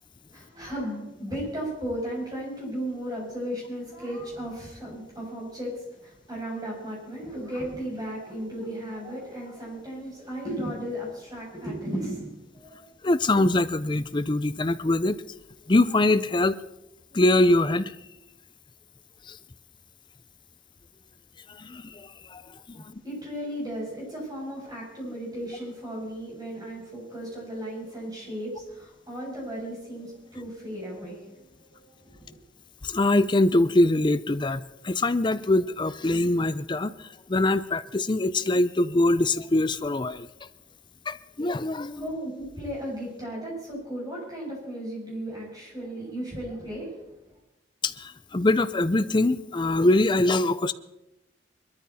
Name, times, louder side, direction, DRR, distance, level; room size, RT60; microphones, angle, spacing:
voice 1, 0.3-12.8 22.7-32.4 41.9-47.4, equal, 20° right, -4 dB, 7.5 m, -35 dB
voice 2, 13.0-15.2 15.7-16.6 17.1-17.9 19.3-19.4 21.6-22.4 22.7-23.0 32.8-40.3 41.1-42.1 47.8-50.7, left 2 dB, 25° left, 13 dB, 0.5 m, -23 dB
22.0 x 13.0 x 4.2 m, 0.92 s
head